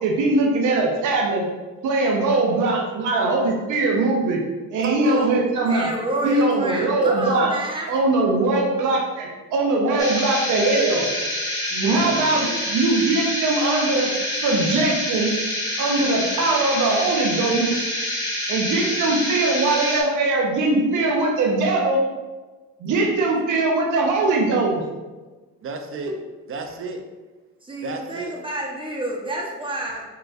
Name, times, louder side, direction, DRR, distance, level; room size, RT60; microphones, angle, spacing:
voice 1, 0.0-1.5 1.8-4.4 4.7-5.9 6.2-7.5 7.9-11.1 11.7-14.1 14.4-15.3 15.8-17.7 18.5-22.0 22.8-24.8, right 2 dB, 80° right, -1 dB, 0.8 m, -21 dB
voice 2, 4.8-5.5 11.9-12.6 25.6-26.2 26.5-27.0 27.8-28.3, right 3 dB, 45° right, 5 dB, 0.6 m, -32 dB
voice 3, 5.6-7.9 27.6-30.0, right 1 dB, 15° right, -2 dB, 1.0 m, -29 dB
sound 1, 10.0-20.0, left 1 dB, 10° left, 1.3 m, -27 dB
4.8 x 3.1 x 2.5 m, 1.3 s
cardioid pair, 90°, 30 cm